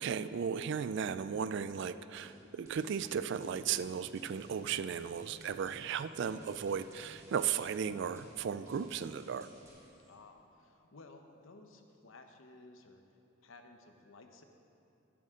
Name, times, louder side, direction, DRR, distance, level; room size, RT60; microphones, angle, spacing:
voice 1, 0.0-9.5, right 7 dB, 55° right, 13 dB, 0.3 m, -36 dB
sound 1, 2.2-10.2, right 1 dB, 15° right, 1.6 m, -61 dB
sound 2, 2.6-9.4, equal, 35° right, 1.5 m, -59 dB
voice 2, 10.1-13.0 13.4-14.4, left 3 dB, 70° left, 5 dB, 0.9 m, -56 dB
16.5 x 8.4 x 3.7 m, 2.8 s
head